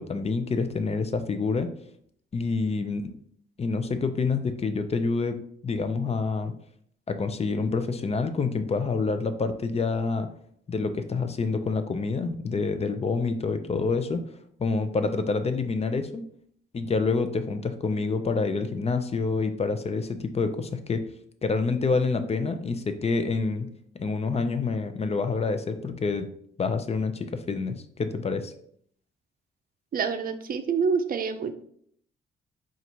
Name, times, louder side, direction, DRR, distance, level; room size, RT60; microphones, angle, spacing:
voice 1, 0.0-1.7 2.3-3.1 3.6-5.4 5.6-6.5 7.1-10.3 10.7-14.2 14.6-16.2 16.7-21.0 21.4-23.7 23.9-26.3 26.6-28.5, left 4 dB, 35° left, 9 dB, 0.5 m, -27 dB
voice 2, 29.9-31.5, right 5 dB, 50° right, 9 dB, 0.5 m, -27 dB
4.0 x 2.5 x 4.4 m, 0.65 s
cardioid pair, 70°, 19 cm